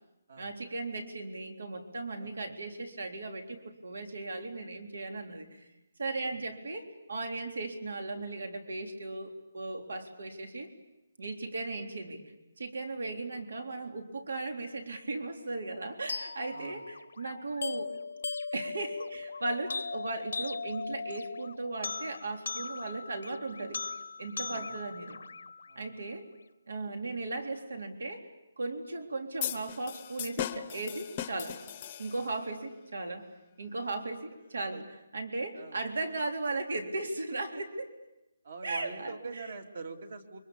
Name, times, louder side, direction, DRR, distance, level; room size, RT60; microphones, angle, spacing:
voice 1, 0.4-5.7 6.0-10.7 11.2-12.2 12.6-17.9 18.5-23.8 24.2-25.2 25.8-26.3 26.7-28.3 28.6-31.6 32.0-33.3 33.6-34.8 35.1-38.0 38.6-39.5, right 2 dB, 80° right, 4 dB, 3.7 m, -37 dB
voice 2, 2.2-2.6 6.2-6.5 12.0-12.1 16.5-16.8 24.4-24.7 25.7-26.0 34.7-34.8 35.5-35.8 38.4-40.4, right 4 dB, 50° right, 6 dB, 2.6 m, -44 dB
sound 1, 16.1-26.1, left 4 dB, 70° left, 0.9 m, -39 dB
sound 2, 29.4-32.5, left 10 dB, 20° left, 0.9 m, -38 dB
30.0 x 24.0 x 6.9 m, 0.95 s
hypercardioid pair, 175°, 0 cm